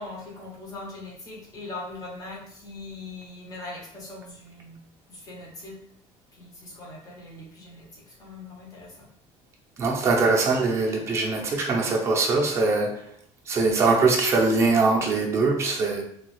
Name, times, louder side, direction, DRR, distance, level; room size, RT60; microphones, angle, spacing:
voice 1, 0.0-4.8 5.1-5.8 6.3-9.0, left 2 dB, 25° left, -3 dB, 0.8 m, -41 dB
voice 2, 9.8-13.0 13.5-16.0, right 3 dB, 20° right, -2 dB, 0.5 m, -22 dB
3.0 x 2.3 x 3.1 m, 0.68 s
cardioid pair, 180°, 13 cm